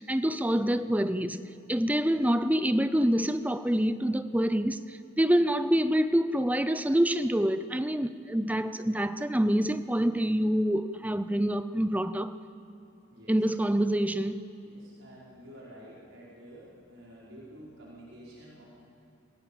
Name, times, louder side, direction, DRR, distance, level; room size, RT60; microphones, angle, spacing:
voice 1, 0.0-1.4 1.7-12.3 13.3-14.4, equal, 10° right, 0.6 m, -26 dB
voice 2, 13.1-13.5 14.6-18.7, equal, 80° right, 5.4 m, -50 dB
27.5 x 17.0 x 7.3 m
head